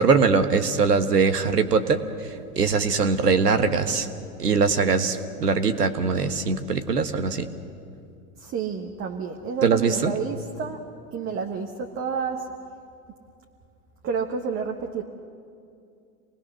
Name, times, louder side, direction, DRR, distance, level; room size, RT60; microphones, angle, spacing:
voice 1, 0.0-4.1 4.4-7.5 9.6-10.1, right 5 dB, 85° right, 8 dB, 1.5 m, -22 dB
voice 2, 8.4-10.8 11.1-12.5 14.0-15.0, right 6 dB, 30° right, 3 dB, 1.4 m, -30 dB
28.5 x 19.5 x 6.3 m, 2.5 s
figure-of-eight pair, 95°, 46 cm